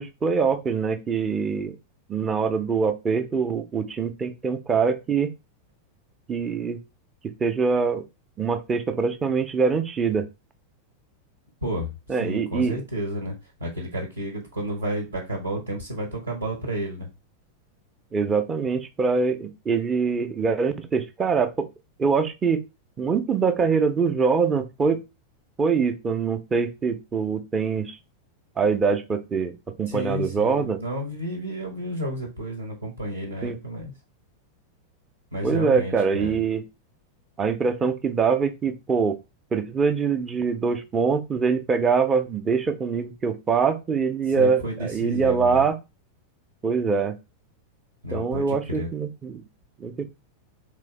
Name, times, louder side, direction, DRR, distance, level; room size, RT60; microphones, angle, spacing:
voice 1, 0.0-1.8 2.1-5.3 6.3-6.8 7.4-8.0 8.4-10.3 12.1-12.8 18.1-21.7 22.0-22.6 23.0-25.0 25.6-28.0 28.6-30.8 33.4-33.6 35.4-36.6 37.4-39.2 39.5-45.8 46.6-47.2 48.1-49.4 49.8-50.0, right 5 dB, 20° right, 8 dB, 0.6 m, -24 dB
voice 2, 11.6-11.9 12.2-13.3 13.6-17.1 29.9-33.9 35.3-36.4 44.4-45.6 48.0-48.9, equal, 80° right, 2 dB, 1.3 m, -31 dB
3.9 x 3.3 x 3.3 m, 0.25 s
figure-of-eight pair, 90°, 0 cm